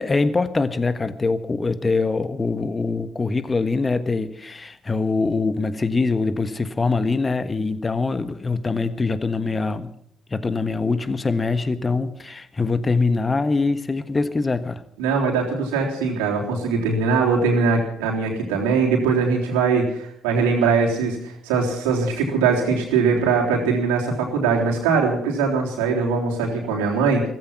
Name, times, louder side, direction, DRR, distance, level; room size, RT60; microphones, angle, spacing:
voice 1, 0.0-9.9 10.3-14.8, left 3 dB, 25° left, 13 dB, 1.4 m, -23 dB
voice 2, 15.0-27.2, right 5 dB, 75° right, 0 dB, 3.5 m, -21 dB
15.5 x 15.0 x 5.9 m, 0.69 s
figure-of-eight pair, 45°, 0 cm